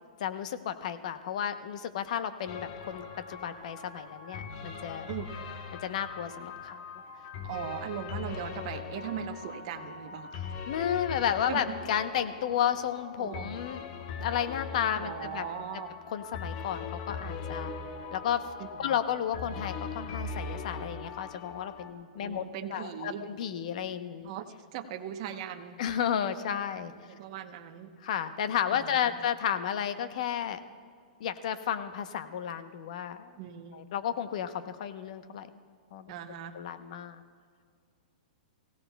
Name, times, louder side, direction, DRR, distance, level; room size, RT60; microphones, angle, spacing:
voice 1, 0.2-5.1 5.8-6.8 10.7-13.8 14.2-15.4 16.1-17.7 18.1-18.4 18.8-22.4 22.7-24.3 25.8-26.9 28.0-30.6 31.2-33.3 33.7-35.5 35.9-36.1 36.5-37.2, left 9 dB, 55° left, 10 dB, 0.8 m, -32 dB
sound 1, 2.5-21.9, left 5 dB, 40° left, 1.0 m, -40 dB
voice 2, 7.4-10.4 11.5-11.8 13.2-13.6 15.0-16.0 18.6-19.0 22.2-23.3 24.2-25.8 27.1-27.9 28.7-29.2 33.4-33.8 36.1-36.6, right 9 dB, 45° right, 7 dB, 0.9 m, -39 dB
23.0 x 16.5 x 2.3 m, 2.1 s
hypercardioid pair, 155°, 4 cm